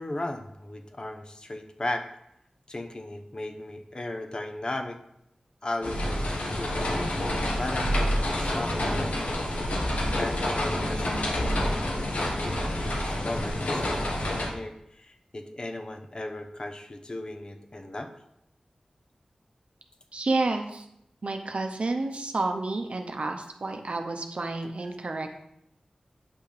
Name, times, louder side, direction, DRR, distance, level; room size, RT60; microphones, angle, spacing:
voice 1, 0.0-2.1 2.7-5.0 5.6-7.0 7.5-9.1 10.2-18.1, left 1 dB, 40° left, 7 dB, 0.7 m, -37 dB
sound 1, 5.8-14.5, left 1 dB, 80° left, 1.3 m, -28 dB
voice 2, 20.1-20.9 21.2-25.4, right 2 dB, 60° right, 5 dB, 0.7 m, -30 dB
8.4 x 5.8 x 3.3 m, 0.78 s
wide cardioid pair, 90°, 2 cm